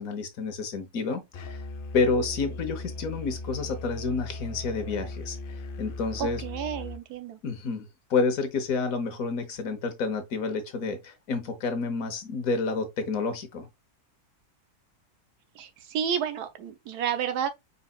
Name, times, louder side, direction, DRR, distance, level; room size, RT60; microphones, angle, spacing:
voice 1, 0.0-1.6 1.9-6.4 7.4-13.7, left 4 dB, 65° left, 1.3 m, -29 dB
Musical instrument, 1.3-7.0, left 2 dB, 85° left, 0.4 m, -38 dB
voice 2, 6.2-7.4 15.5-17.5, right 8 dB, 85° right, 1.3 m, -31 dB
4.8 x 4.1 x 2.3 m
omnidirectional pair, 1.6 m